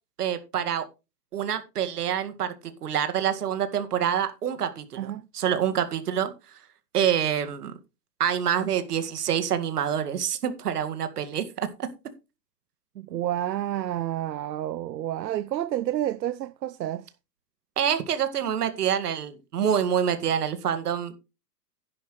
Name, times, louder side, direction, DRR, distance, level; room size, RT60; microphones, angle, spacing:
voice 1, 0.2-0.9 1.3-2.5 2.8-6.3 6.9-7.7 8.2-11.9 17.8-21.2, right 9 dB, 65° right, 2.1 m, -26 dB
voice 2, 4.9-5.3 13.0-17.1, right 12 dB, 90° right, 0.8 m, -30 dB
11.5 x 10.5 x 3.2 m
hypercardioid pair, 170°, 50 cm